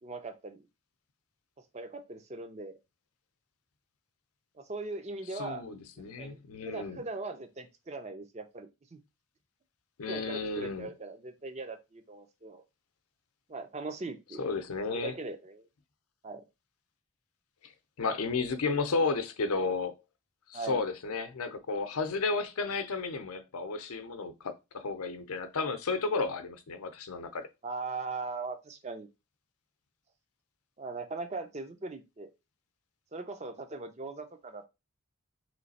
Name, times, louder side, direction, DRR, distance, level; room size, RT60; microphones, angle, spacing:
voice 1, 0.0-0.7 1.6-2.8 4.5-5.6 6.2-6.4 6.7-9.0 10.1-12.6 13.5-14.4 14.9-15.7 16.2-16.4 20.5-20.8 27.6-29.1 30.8-32.3 33.1-34.7, right 3 dB, 30° right, 0.4 m, -40 dB
voice 2, 5.4-7.0 10.0-10.9 14.4-15.1 17.6-17.7 18.0-19.9 20.5-27.5, left 4 dB, 85° left, 0.6 m, -33 dB
3.2 x 3.2 x 4.0 m
head